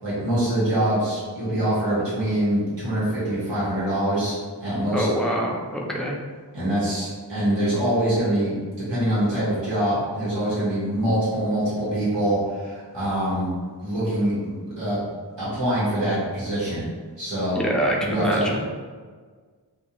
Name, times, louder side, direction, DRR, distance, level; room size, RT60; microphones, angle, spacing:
voice 1, 0.0-5.1 6.5-8.5 8.9-13.5 13.8-15.0 15.4-16.8 17.2-17.6 18.0-18.4, right 1 dB, 80° right, -10 dB, 1.2 m, -24 dB
voice 2, 4.9-6.2 17.5-18.6, equal, ahead, -1 dB, 0.4 m, -25 dB
2.4 x 2.3 x 2.8 m, 1.5 s
wide cardioid pair, 45°, 43 cm